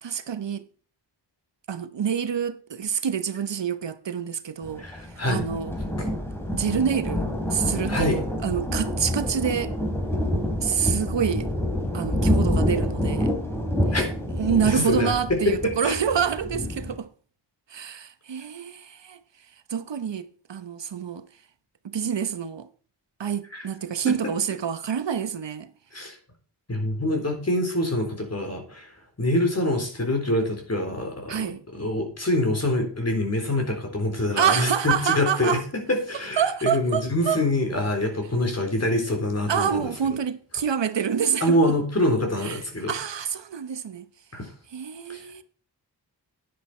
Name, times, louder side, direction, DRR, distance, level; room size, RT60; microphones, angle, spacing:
voice 1, 0.0-0.6 1.7-4.9 5.3-5.7 6.5-9.7 10.6-11.5 11.9-13.4 14.3-17.1 17.7-19.2 19.7-21.2 21.8-22.7 23.2-25.7 31.3-31.6 34.4-35.6 36.4-37.4 39.5-41.7 42.4-42.6 42.9-44.1 44.7-45.4, right 7 dB, 80° right, 1.0 m, -27 dB
Thunder, 4.6-16.9, left 1 dB, 5° left, 2.9 m, -27 dB
voice 2, 4.8-5.4 6.0-6.1 7.9-8.2 13.9-14.1 14.6-16.0 23.5-23.7 24.0-24.3 25.9-26.2 26.7-28.9 29.2-39.9 41.4-42.9 44.3-44.5 45.1-45.2, left 1 dB, 35° left, 3.9 m, -25 dB
10.5 x 10.0 x 4.3 m
wide cardioid pair, 100°, 42 cm